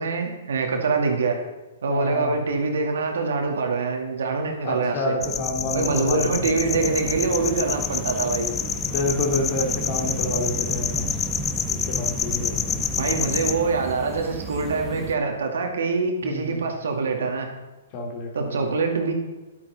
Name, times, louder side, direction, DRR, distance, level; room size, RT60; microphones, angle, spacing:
voice 1, 0.0-1.4 1.8-5.2 5.7-8.5 13.0-17.5 18.3-19.1, right 4 dB, 70° right, 3 dB, 2.1 m, -24 dB
voice 2, 1.9-2.4 4.6-6.6 8.9-11.1 11.6-12.8 16.2-16.6 17.9-18.8, left 2 dB, 45° left, 1 dB, 2.9 m, -29 dB
sound 1, 5.2-13.5, left 7 dB, 20° left, 0.6 m, -28 dB
sound 2, 6.6-15.2, right 4 dB, 15° right, 1.4 m, -35 dB
11.0 x 9.1 x 4.1 m, 1.1 s
hypercardioid pair, 120°, 0 cm